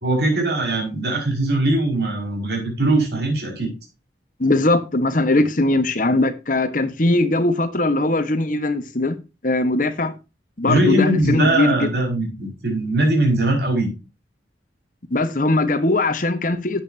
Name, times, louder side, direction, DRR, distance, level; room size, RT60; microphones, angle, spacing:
voice 1, 0.0-3.7 10.6-13.9, right 1 dB, 65° right, 5.5 m, -20 dB
voice 2, 4.4-9.2 9.4-10.1 10.6-11.9 15.1-16.8, left 2 dB, 50° left, 1.3 m, -20 dB
12.0 x 8.9 x 2.8 m
head